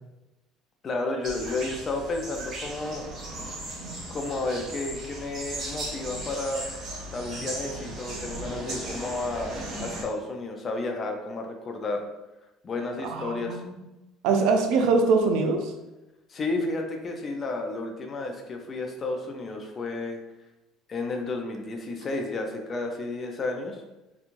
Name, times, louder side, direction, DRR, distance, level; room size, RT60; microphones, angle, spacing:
voice 1, 0.8-3.0 4.1-6.7 7.1-9.5 9.8-12.0 12.6-13.6 16.3-20.2 20.9-23.8, left 2 dB, 30° left, 3 dB, 0.4 m, -32 dB
sound 1, 1.2-10.0, right 1 dB, 45° right, 0.8 m, -37 dB
voice 2, 13.0-13.8 14.2-15.7, right 4 dB, 75° right, 4 dB, 0.4 m, -23 dB
3.0 x 2.3 x 2.5 m, 1.0 s
cardioid pair, 130°, 0 cm